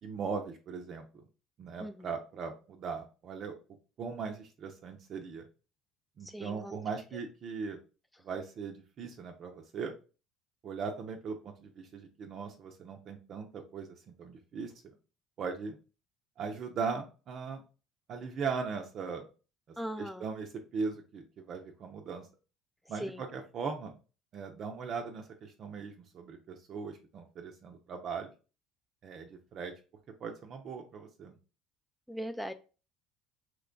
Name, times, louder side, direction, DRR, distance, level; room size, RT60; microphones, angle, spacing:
voice 1, 0.0-1.1 1.6-3.6 4.0-5.4 6.2-7.8 8.2-9.9 10.6-14.7 15.4-15.8 16.4-17.6 18.1-19.3 20.0-22.3 22.9-23.9 24.3-28.3 29.0-29.7 30.2-31.4, right 5 dB, 50° right, 3 dB, 0.5 m, -39 dB
voice 2, 6.2-6.8 19.8-20.3 23.0-23.2 32.1-32.5, equal, 5° left, 8 dB, 0.3 m, -39 dB
2.9 x 2.2 x 3.7 m, 0.34 s
supercardioid pair, 80°, 0 cm